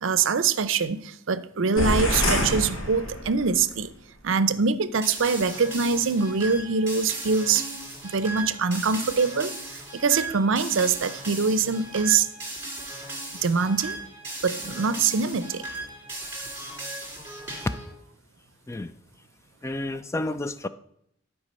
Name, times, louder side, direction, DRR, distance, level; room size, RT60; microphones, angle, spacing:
voice 1, 0.0-3.9 4.2-7.7 8.0-12.3 13.4-14.0 14.4-15.6, right 5 dB, 70° right, 0.5 m, -24 dB
sound 1, 1.8-3.6, equal, 75° left, 2.0 m, -26 dB
sound 2, 5.0-17.9, right 2 dB, 10° right, 2.7 m, -37 dB
voice 2, 19.6-20.7, left 2 dB, 15° left, 0.3 m, -30 dB
11.5 x 4.7 x 5.4 m
head